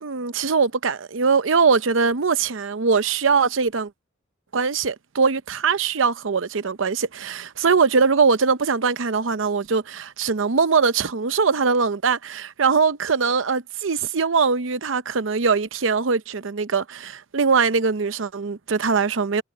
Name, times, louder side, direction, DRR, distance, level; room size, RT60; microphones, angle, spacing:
voice 1, 0.0-3.9 4.5-19.4, right 5 dB, 75° right, 0.7 m, -21 dB
head